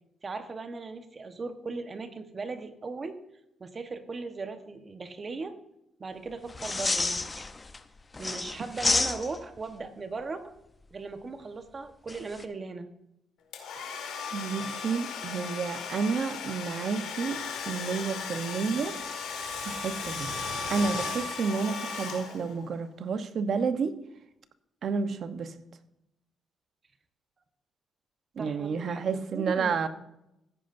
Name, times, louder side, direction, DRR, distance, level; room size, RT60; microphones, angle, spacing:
voice 1, 0.2-3.2 3.6-5.5 6.0-7.3 8.2-10.5 10.9-12.9 28.4-29.9, right 4 dB, 35° right, 1.2 m, -38 dB
sound 1, 6.5-7.8 8.1-9.6 12.1-12.4, left 3 dB, 25° left, 0.7 m, -29 dB
Domestic sounds home sounds, 13.5-22.7, left 5 dB, 85° left, 2.0 m, -36 dB
voice 2, 14.3-19.0 19.7-20.3 20.7-23.9 24.8-25.5 28.4-29.9, right 5 dB, 60° right, 0.9 m, -30 dB
16.0 x 9.6 x 2.6 m
cardioid pair, 90°, 0 cm